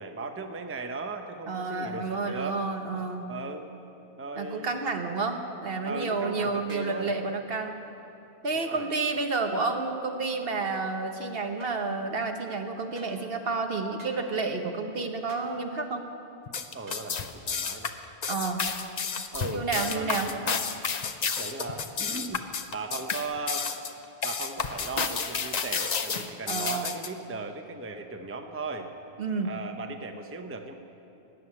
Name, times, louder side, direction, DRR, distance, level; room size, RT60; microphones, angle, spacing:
voice 1, 0.0-2.6 3.3-3.7 4.2-4.9 5.9-7.1 8.5-8.9 16.7-17.9 19.3-20.6 21.4-23.7 24.2-28.9 29.4-30.7, right 3 dB, 15° right, 6 dB, 0.7 m, -37 dB
voice 2, 1.5-3.3 4.4-7.8 8.4-16.0 18.3-18.6 19.5-20.3 26.5-26.9 29.2-29.5, right 3 dB, 60° right, 5 dB, 1.2 m, -30 dB
sound 1, 6.7-7.0 11.6-11.8 12.9-13.2 14.0-14.2 15.3-15.5 16.9-17.1 17.8-18.0, right 1 dB, 85° right, 1.8 m, -49 dB
sound 2, 16.5-27.1, left 6 dB, 45° left, 0.7 m, -31 dB
17.5 x 7.4 x 9.7 m, 2.8 s
omnidirectional pair, 1.1 m